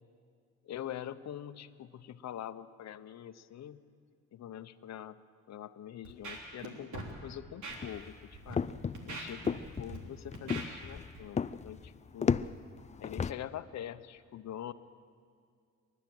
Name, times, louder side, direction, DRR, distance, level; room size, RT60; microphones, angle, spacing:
voice 1, 0.6-3.8 4.3-5.2 5.5-8.6 9.1-12.4 13.0-14.7, left 11 dB, 60° left, 12 dB, 0.9 m, -44 dB
Scratching (performance technique), 6.0-6.7 6.9-7.1 7.6-7.8 8.3-8.5 8.9-10.0 10.3-10.6 11.1-11.3, right 3 dB, 70° right, 3.5 m, -42 dB
sound 1, 7.7-13.3, left 6 dB, 25° left, 0.4 m, -35 dB
28.5 x 12.0 x 7.9 m, 2.3 s
cardioid pair, 90°, 30 cm